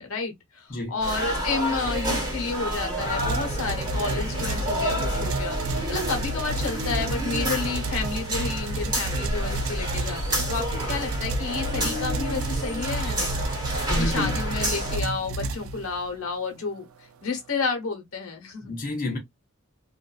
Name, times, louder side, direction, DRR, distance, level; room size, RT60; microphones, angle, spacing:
voice 1, 0.0-5.6 5.9-13.4 14.0-16.8 17.2-18.7, left 4 dB, 90° left, 0.9 m, -31 dB
sound 1, 1.0-15.0, equal, 20° right, 1.2 m, -29 dB
sound 2, 3.0-16.2, right 3 dB, 75° right, 0.4 m, -32 dB
voice 2, 13.9-14.4 18.6-19.2, left 1 dB, 40° left, 0.7 m, -29 dB
2.5 x 2.3 x 2.2 m
head